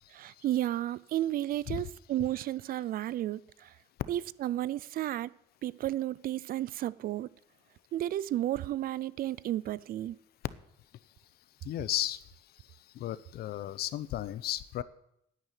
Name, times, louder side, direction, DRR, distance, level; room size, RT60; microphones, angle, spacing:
voice 1, 0.1-3.7 4.1-5.3 5.6-7.3 7.9-10.2, right 13 dB, 60° right, 0.5 m, -32 dB
voice 2, 11.6-12.2 13.0-14.8, left 13 dB, 70° left, 0.8 m, -34 dB
10.0 x 9.7 x 9.2 m
cardioid pair, 110°, 17 cm